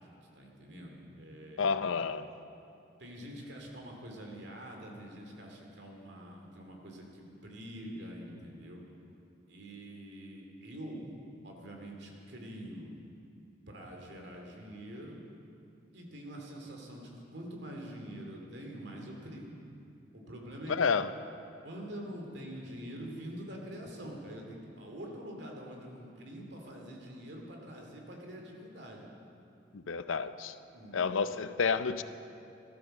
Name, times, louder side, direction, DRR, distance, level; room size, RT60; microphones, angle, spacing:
voice 1, 0.0-1.8 3.0-8.8 9.5-11.1 11.4-12.9 13.7-15.2 15.9-19.6 20.1-20.9 21.6-29.1 30.7-31.1, equal, 60° right, 1 dB, 2.5 m, -45 dB
voice 2, 1.6-2.3 20.7-21.1 29.7-30.5 30.9-32.0, left 5 dB, 85° left, 12 dB, 0.6 m, -30 dB
15.0 x 13.0 x 6.5 m, 2.7 s
head